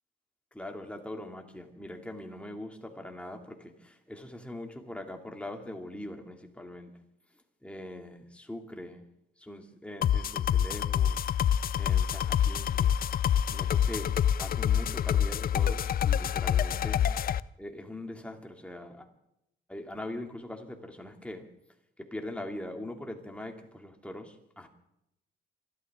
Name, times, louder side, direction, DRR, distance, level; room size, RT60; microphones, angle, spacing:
voice 1, 0.5-6.9 7.6-9.1 9.4-11.2 11.8-12.9 13.5-14.1 14.4-17.0 17.6-19.1 19.7-21.5 22.0-24.7, left 1 dB, 5° left, 2 dB, 2.7 m, -42 dB
sound 1, 10.0-17.4, left 9 dB, 50° left, 0.5 m, -27 dB
26.5 x 12.5 x 3.8 m, 0.80 s
cardioid pair, 90°, 20 cm